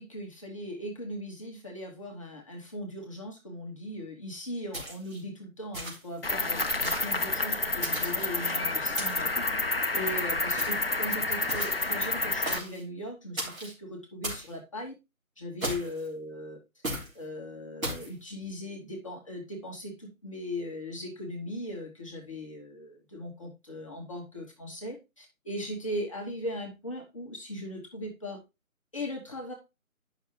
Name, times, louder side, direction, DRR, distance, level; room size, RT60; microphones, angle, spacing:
voice 1, 0.0-9.3 9.6-14.9 15.4-16.6 17.1-28.4 28.9-29.5, left 1 dB, 25° left, -1 dB, 1.1 m, -39 dB
sound 1, 4.7-5.2 5.7-6.2 6.8-7.2 7.8-8.4 9.0-9.4 10.6-10.9 11.5-11.9 12.5-12.8 13.4-13.7 14.2-14.5 15.6-16.1 16.8-17.1 17.8-18.1, right 1 dB, 70° right, 3.6 m, -36 dB
Cricket, 6.2-12.6, left 3 dB, 45° left, 0.5 m, -29 dB
9.7 x 5.8 x 3.1 m, 0.25 s
figure-of-eight pair, 155°, 42 cm